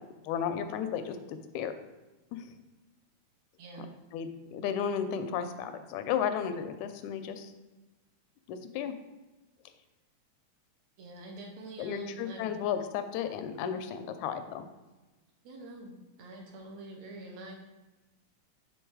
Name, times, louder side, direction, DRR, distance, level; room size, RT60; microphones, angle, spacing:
voice 1, 0.2-1.8 2.3-2.5 4.1-7.5 8.5-8.9 11.8-14.7, left 8 dB, 90° left, 9 dB, 2.0 m, -34 dB
voice 2, 3.6-3.9 11.0-12.5 15.4-17.5, right 2 dB, 75° right, 1 dB, 2.0 m, -45 dB
6.2 x 3.5 x 4.6 m, 1.1 s
omnidirectional pair, 3.3 m